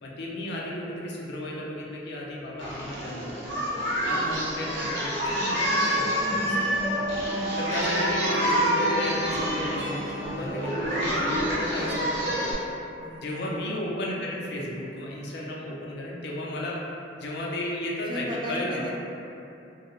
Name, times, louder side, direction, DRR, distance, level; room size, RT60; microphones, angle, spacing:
voice 1, 0.0-3.4 4.0-6.8 7.6-12.5 13.2-16.8 17.2-18.9, left 1 dB, 65° left, -4 dB, 0.4 m, -34 dB
Singing, 2.6-12.5, equal, 70° right, 0.6 m, -28 dB
sound 1, 5.8-12.7, equal, 55° right, 1.0 m, -34 dB
voice 2, 7.3-7.9 13.0-13.6 18.1-18.9, equal, 25° right, -3 dB, 0.3 m, -37 dB
2.3 x 2.1 x 2.9 m, 2.7 s
head